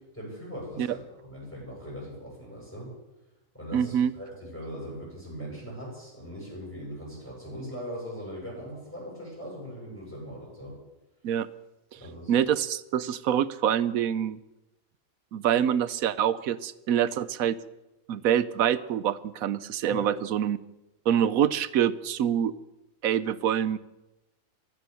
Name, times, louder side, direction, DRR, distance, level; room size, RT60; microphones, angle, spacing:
voice 1, 0.1-2.9 3.5-10.7 12.0-12.4 19.9-20.1, equal, 10° left, -6 dB, 7.8 m, -40 dB
voice 2, 3.7-4.1 11.2-11.5 12.3-14.4 15.3-17.6 18.1-20.6 21.1-22.5 23.0-23.8, right 9 dB, 80° right, 16 dB, 1.1 m, -25 dB
15.5 x 13.0 x 7.0 m, 1.0 s
omnidirectional pair, 1.5 m